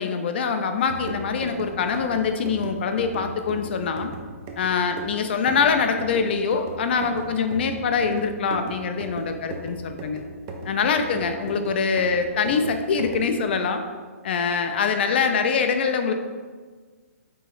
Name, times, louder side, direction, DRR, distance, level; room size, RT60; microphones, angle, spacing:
voice 1, 0.0-4.1 4.6-10.2 10.6-13.8 14.2-16.1, left 5 dB, 45° left, 7 dB, 0.3 m, -24 dB
sound 1, 0.8-13.4, right 2 dB, 25° right, 0.4 m, -38 dB
4.8 x 3.9 x 2.4 m, 1.5 s
hypercardioid pair, 160°, 8 cm